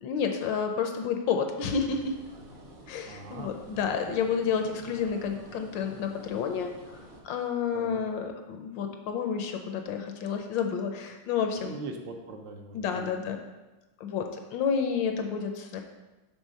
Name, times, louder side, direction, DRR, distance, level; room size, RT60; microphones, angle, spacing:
voice 1, 0.0-2.2 2.9-11.7 12.7-13.4 14.0-15.8, left 6 dB, 75° left, 5 dB, 1.2 m, -30 dB
sound 1, 1.9-7.2, right 1 dB, 45° right, 0.7 m, -49 dB
voice 2, 3.1-3.6 7.7-8.0 11.6-13.1, right 3 dB, 70° right, 3 dB, 1.3 m, -41 dB
6.3 x 3.7 x 5.3 m, 1.1 s
omnidirectional pair, 2.2 m